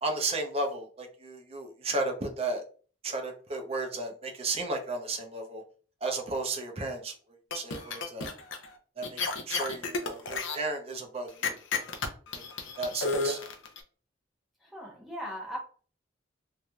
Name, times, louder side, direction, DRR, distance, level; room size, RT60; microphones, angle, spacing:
voice 1, 0.0-2.6 3.0-5.6 6.0-7.1 7.5-8.3 9.0-9.2 9.5-11.6 12.3-12.4 12.8-13.4, right 2 dB, 30° right, 4 dB, 0.6 m, -33 dB
sound 1, 7.5-8.7 9.0-10.6 11.4-13.8, left 4 dB, 85° left, 0.6 m, -31 dB
voice 2, 14.6-15.6, equal, ahead, -3 dB, 0.9 m, -38 dB
3.1 x 2.7 x 2.2 m, 0.40 s
head